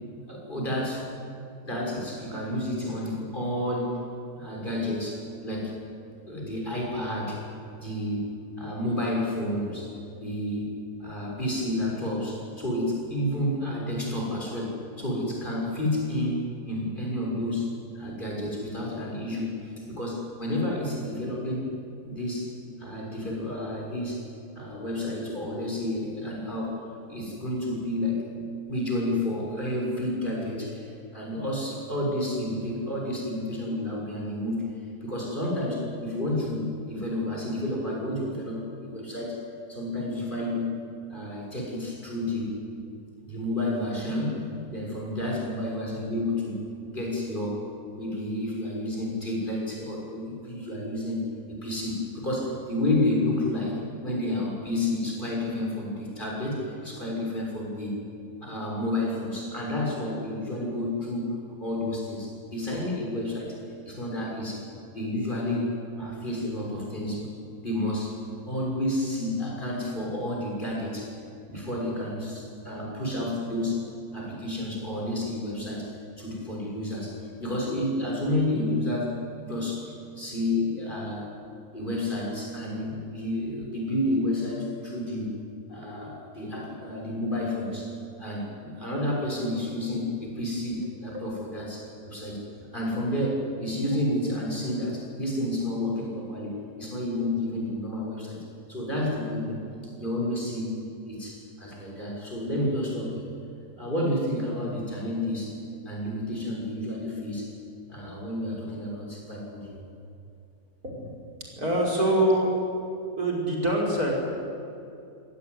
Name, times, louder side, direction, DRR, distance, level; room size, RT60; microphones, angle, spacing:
voice 1, 0.3-1.1 1.6-4.0 4.4-5.8 6.3-7.4 7.8-9.9 10.2-17.7 17.9-21.7 22.0-22.5 22.8-24.3 24.5-26.8 27.1-34.7 35.0-39.4 39.7-40.8 41.1-42.6 43.2-46.6 46.8-47.6 47.9-57.9 58.4-63.6 63.8-64.6 64.9-67.3 67.6-68.2 68.5-71.1 71.5-73.8 74.1-75.9 76.2-81.3 81.7-85.3 85.7-87.9 88.2-92.4 92.7-96.5 96.8-98.4 98.7-103.3 103.8-105.6 105.8-107.5 107.9-109.7, left 1 dB, 30° left, -2 dB, 6.8 m, -30 dB
voice 2, 110.8-111.2 111.6-112.6 113.2-114.1, right 1 dB, 70° right, -2 dB, 6.1 m, -25 dB
26.0 x 17.5 x 9.8 m, 2.6 s
omnidirectional pair, 1.7 m